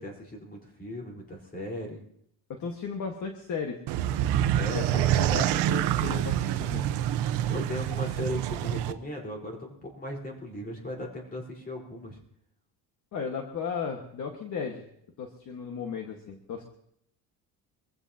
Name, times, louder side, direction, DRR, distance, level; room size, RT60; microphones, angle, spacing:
voice 1, 0.0-2.0 4.5-5.1 7.5-12.2, left 1 dB, 20° left, 0 dB, 4.3 m, -37 dB
voice 2, 2.5-3.8 4.7-6.8 13.1-14.8 15.2-16.6, left 6 dB, 45° left, 2 dB, 1.6 m, -35 dB
sound 1, 3.9-8.9, right 12 dB, 70° right, 0.9 m, -26 dB
25.0 x 15.5 x 2.9 m, 0.72 s
cardioid pair, 140°, 42 cm